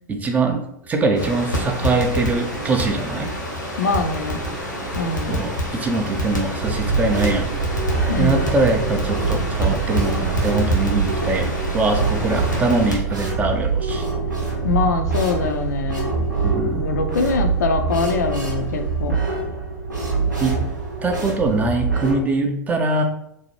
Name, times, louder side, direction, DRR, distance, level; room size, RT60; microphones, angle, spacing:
voice 1, 0.1-3.3 5.3-7.5 7.7-7.8 8.2-14.1 16.4-16.9 20.4-20.6 21.0-23.0, right 3 dB, 15° right, 4 dB, 0.3 m, -22 dB
Crackle, 1.1-12.9, equal, 90° left, 0.9 m, -27 dB
voice 2, 3.8-4.4 4.9-5.3 8.1-8.4 14.6-16.1 16.7-19.2, left 4 dB, 65° left, 6 dB, 0.4 m, -23 dB
sound 1, 6.6-22.2, right 4 dB, 85° right, 0.7 m, -24 dB
2.6 x 2.0 x 3.0 m, 0.75 s
figure-of-eight pair, 90°, 10 cm